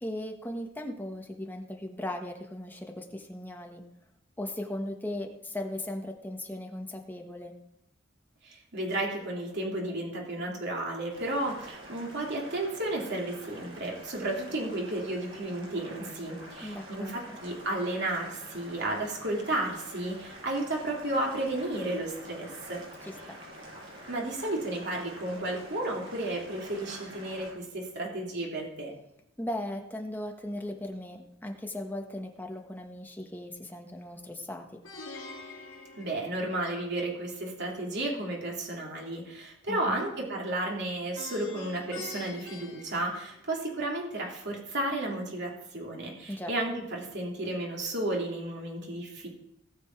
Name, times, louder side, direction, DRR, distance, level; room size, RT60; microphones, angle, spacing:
voice 1, 0.0-3.8 4.4-7.5 16.6-17.4 23.1-23.4 29.4-34.8 39.7-40.0 46.3-46.5, left 1 dB, 10° left, 2 dB, 1.3 m, -38 dB
voice 2, 8.4-22.8 24.1-28.9 36.0-49.3, right 1 dB, 60° right, -1 dB, 3.0 m, -33 dB
Boiling, 11.1-27.5, equal, 75° right, 5.8 m, -47 dB
Plucked string instrument, 34.8-37.0 41.1-43.8, left 3 dB, 85° left, 2.3 m, -45 dB
18.0 x 7.0 x 4.7 m, 0.81 s
head